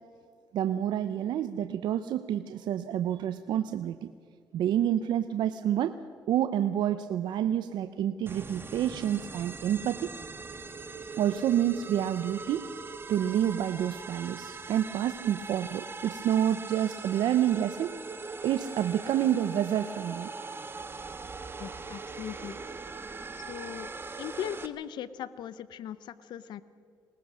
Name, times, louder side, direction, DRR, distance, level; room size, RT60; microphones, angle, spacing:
voice 1, 0.5-4.1 4.5-6.0 6.3-10.1 11.2-12.7 13.1-17.9 18.4-20.3, right 10 dB, 75° right, 11 dB, 0.7 m, -28 dB
sound 1, 8.3-24.7, right 4 dB, 30° right, 1.4 m, -41 dB
voice 2, 21.6-22.6 23.4-23.9 24.2-26.6, left 10 dB, 75° left, 16 dB, 0.7 m, -39 dB
21.0 x 19.5 x 6.3 m, 2.2 s
cardioid pair, 80°, 8 cm